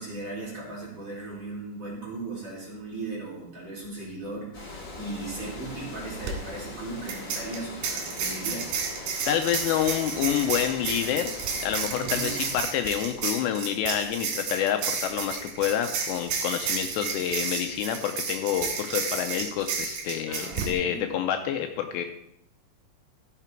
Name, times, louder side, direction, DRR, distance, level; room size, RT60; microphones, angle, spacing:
voice 1, 0.0-8.7 11.9-12.3 20.3-21.1, right 2 dB, 35° right, -6 dB, 3.4 m, -37 dB
Water, 4.5-12.6, left 2 dB, 45° left, 1.4 m, -41 dB
sound 1, 6.1-6.3 7.1-20.7, right 5 dB, 70° right, 3.8 m, -32 dB
voice 2, 9.3-11.3 11.6-22.0, left 10 dB, 80° left, 6 dB, 2.7 m, -28 dB
15.0 x 6.0 x 4.5 m, 0.77 s
omnidirectional pair, 5.2 m